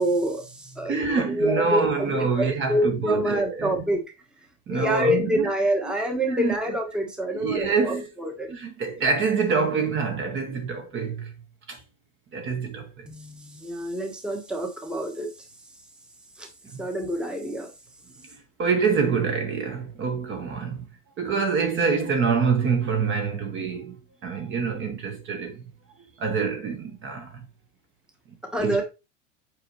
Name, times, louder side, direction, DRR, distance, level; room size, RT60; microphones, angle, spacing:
voice 1, 0.0-4.0 4.7-8.5 13.1-15.3 16.4-16.5 16.8-17.7 28.4-28.8, equal, ahead, 1.1 m, -27 dB
voice 2, 0.9-3.8 4.7-5.5 6.3-6.5 7.3-8.1 8.5-11.3 11.7-11.8 12.3-13.1 16.7-16.9 18.6-20.9 21.2-24.0 24.2-25.6 26.2-27.5 28.3-28.8, right 5 dB, 25° right, 1.0 m, -26 dB
7.7 x 4.2 x 3.1 m
supercardioid pair, 145°, 45 cm